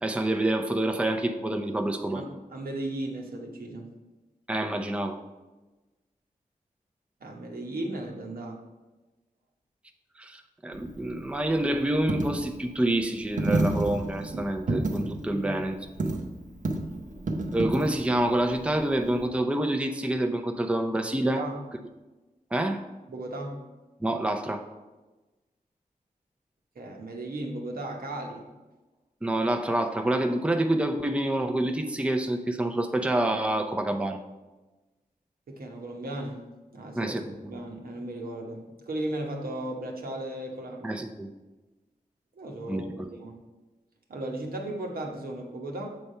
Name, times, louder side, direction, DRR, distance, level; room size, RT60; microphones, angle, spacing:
voice 1, 0.0-2.2 4.5-5.2 10.2-16.2 17.5-21.4 22.5-22.8 24.0-24.6 29.2-34.2 37.0-37.2 40.8-41.3 42.7-43.1, right 1 dB, 10° right, 5 dB, 0.5 m, -27 dB
voice 2, 2.1-3.9 7.2-8.6 15.3-15.6 21.2-21.6 23.1-23.6 26.7-28.5 35.5-36.4 36.7-40.9 42.3-43.4 44.1-45.9, right 1 dB, 80° right, 1 dB, 1.1 m, -36 dB
Coin (dropping), 10.7-19.3, right 2 dB, 55° right, 0.8 m, -31 dB
7.1 x 3.3 x 5.4 m, 1.2 s
cardioid pair, 60°, 15 cm